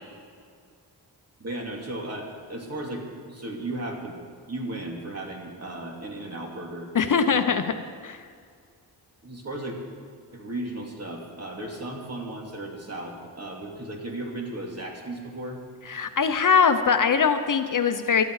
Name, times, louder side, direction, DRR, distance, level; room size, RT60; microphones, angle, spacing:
voice 1, 1.4-4.2 4.5-6.9 7.2-7.5 9.2-9.8 10.3-15.6, right 1 dB, 35° right, 0 dB, 2.9 m, -35 dB
voice 2, 6.9-7.7 8.0-8.2 15.9-18.2, left 6 dB, 50° left, 8 dB, 0.8 m, -22 dB
21.0 x 13.0 x 4.9 m, 2.2 s
wide cardioid pair, 115°, 42 cm